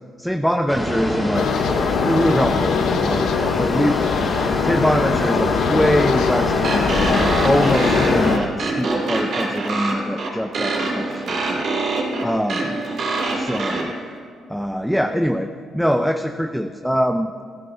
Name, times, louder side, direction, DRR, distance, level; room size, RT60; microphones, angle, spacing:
voice 1, 0.2-1.5 2.0-4.0 4.6-11.7 12.2-12.8 13.3-13.9 14.5-17.3, equal, ahead, 6 dB, 0.5 m, -23 dB
sound 1, 0.7-8.4, left 1 dB, 20° left, 2.7 m, -24 dB
sound 2, 1.3-8.4, left 7 dB, 80° left, 0.6 m, -22 dB
sound 3, 6.6-13.8, right 3 dB, 65° right, 2.6 m, -24 dB
15.5 x 13.0 x 2.7 m, 2.1 s
cardioid pair, 90°, 0 cm